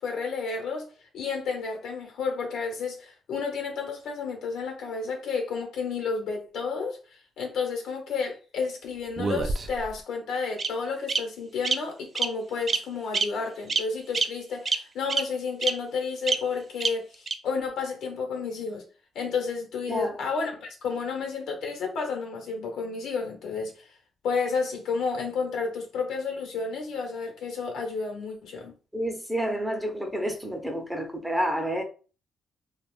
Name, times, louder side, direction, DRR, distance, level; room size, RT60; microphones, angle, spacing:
voice 1, 0.0-18.8 19.1-23.9 24.2-28.7, left 5 dB, 75° left, 1.1 m, -31 dB
Bird vocalization bird call bird song, 9.2-9.9 10.6-10.7 11.1-11.2 11.6-11.7 12.1-12.3 12.7-12.8 13.1-13.2 13.7-13.8 14.1-14.2 14.7-14.8 15.1-15.2 15.6-15.7 16.3-16.4 16.8-16.9 17.3-17.4, right 4 dB, 40° right, 0.4 m, -25 dB
voice 2, 28.9-31.8, equal, 5° right, 0.8 m, -29 dB
2.4 x 2.3 x 3.2 m
cardioid pair, 90°, 0 cm